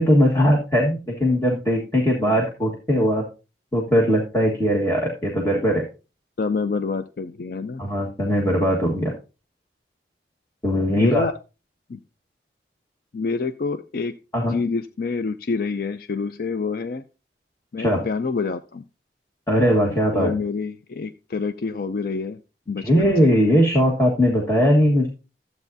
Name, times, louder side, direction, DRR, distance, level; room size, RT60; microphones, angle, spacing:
voice 1, 0.0-3.2 3.7-5.8 7.8-9.1 10.6-11.3 14.3-14.6 17.8-18.1 19.5-20.3 22.8-25.1, equal, 15° left, -3 dB, 1.4 m, -19 dB
voice 2, 6.4-7.8 11.0-11.3 11.9-12.0 13.1-14.1 14.5-17.0 17.7-18.8 20.1-22.4 22.7-23.3, left 4 dB, 55° left, 10 dB, 0.4 m, -27 dB
13.0 x 8.1 x 2.7 m, 0.30 s
head